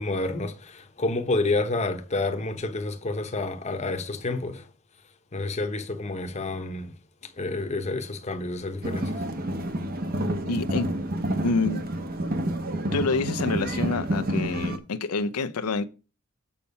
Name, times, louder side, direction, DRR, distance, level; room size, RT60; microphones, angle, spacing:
voice 1, 0.0-4.7 5.3-6.9 7.4-9.2, left 2 dB, 30° left, 0.9 m, -29 dB
sound 1, 8.8-14.8, right 1 dB, 45° right, 1.0 m, -29 dB
voice 2, 10.4-10.9 11.4-11.8 12.9-15.9, left 4 dB, 90° left, 0.6 m, -27 dB
7.0 x 5.7 x 5.4 m
head